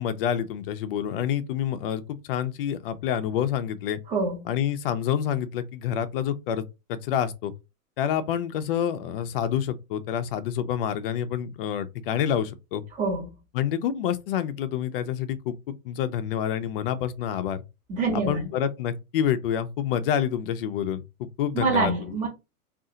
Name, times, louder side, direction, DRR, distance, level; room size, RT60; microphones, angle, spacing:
voice 1, 0.0-4.0 4.5-6.6 6.9-7.5 8.0-12.8 13.5-17.6 18.1-21.9, left 9 dB, 40° left, 0.5 m, -28 dB
voice 2, 13.0-13.3 17.9-18.5 21.5-22.3, right 3 dB, 15° right, 1.0 m, -25 dB
2.6 x 2.5 x 3.8 m
hypercardioid pair, 135°, 45 cm